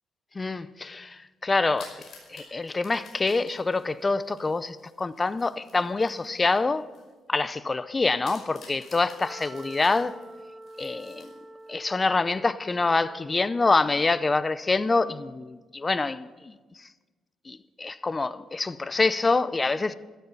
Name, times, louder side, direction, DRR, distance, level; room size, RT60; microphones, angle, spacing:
voice 1, 0.3-1.9 2.3-6.9 7.3-10.2 10.8-11.3 11.7-16.5 17.5-19.9, left 3 dB, 25° left, 0.6 m, -26 dB
sound 1, 1.6-7.1 7.5-7.6 8.2-11.7, left 4 dB, 55° left, 5.3 m, -51 dB
Wind instrument woodwind instrument, 9.2-14.3, right 1 dB, 25° right, 1.2 m, -47 dB
13.5 x 12.5 x 5.5 m
cardioid pair, 90°, 0 cm